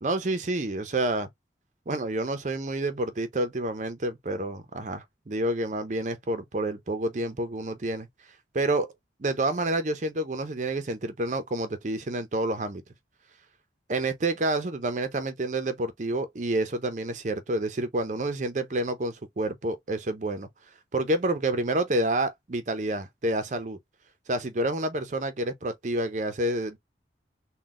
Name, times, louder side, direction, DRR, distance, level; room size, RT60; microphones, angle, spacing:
voice 1, 0.0-1.3 1.9-8.1 8.5-8.9 9.2-12.8 13.9-20.5 20.9-23.8 24.3-26.8, right 2 dB, 40° right, 0.6 m, -28 dB
3.9 x 2.2 x 3.6 m
head